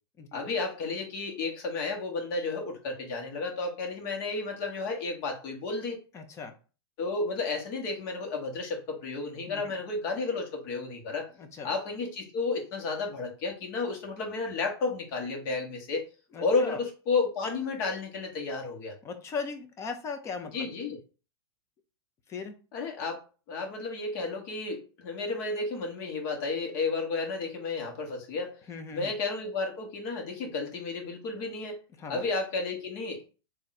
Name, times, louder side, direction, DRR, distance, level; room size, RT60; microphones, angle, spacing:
voice 1, 0.3-6.0 7.0-11.3 11.6-16.1 16.4-18.9 20.5-21.0 22.7-23.2 23.5-28.6 28.9-31.8 32.1-33.3, left 3 dB, 45° left, 2 dB, 1.5 m, -32 dB
voice 2, 6.1-6.6 9.5-9.7 11.4-11.7 16.3-16.8 19.0-20.7 22.3-22.6 28.7-29.1 32.0-32.2, left 5 dB, 20° left, 7 dB, 0.7 m, -38 dB
3.6 x 2.8 x 4.2 m, 0.34 s
supercardioid pair, 145°, 14 cm